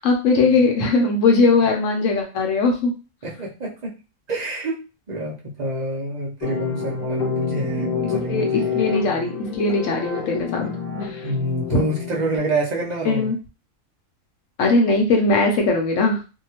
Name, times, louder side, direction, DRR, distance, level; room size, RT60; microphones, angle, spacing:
voice 1, 0.0-2.9 8.3-8.5 8.7-10.7 11.0-11.3 11.7-11.8 13.0-13.4 14.6-16.2, left 3 dB, 65° left, 2 dB, 0.9 m, -19 dB
voice 2, 3.2-4.0 4.3-8.8 11.2-13.3, right 1 dB, 50° right, -4 dB, 0.5 m, -27 dB
sound 1, 6.4-12.4, left 7 dB, 85° left, 1.3 m, -28 dB
2.7 x 2.2 x 2.8 m, 0.31 s
omnidirectional pair, 1.5 m